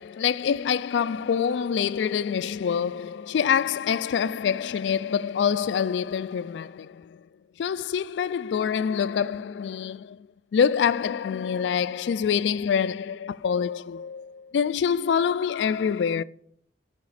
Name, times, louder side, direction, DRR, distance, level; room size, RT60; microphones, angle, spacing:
voice 1, 0.0-7.2 7.6-10.2 10.5-16.2, left 7 dB, 85° left, 0.3 m, -26 dB
13.5 x 5.9 x 4.8 m
head